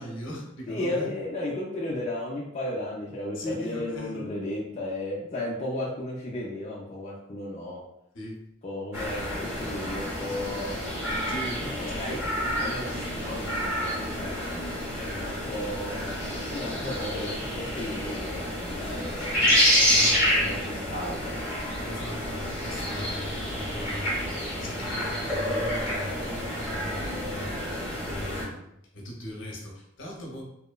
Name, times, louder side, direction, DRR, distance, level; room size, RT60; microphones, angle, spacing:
voice 1, 0.0-1.1 3.3-4.3 8.1-8.4 11.3-12.1 19.8-20.5 21.8-27.6 28.0-30.4, equal, 65° left, -2 dB, 0.7 m, -39 dB
voice 2, 0.7-7.8 8.6-10.8 11.8-12.2 12.6-14.7 15.1-16.2 16.5-19.4 20.4-21.3, left 1 dB, 35° left, -5 dB, 0.4 m, -34 dB
sound 1, 8.9-28.4, equal, 10° right, 0.8 m, -29 dB
2.8 x 2.1 x 2.2 m, 0.79 s
head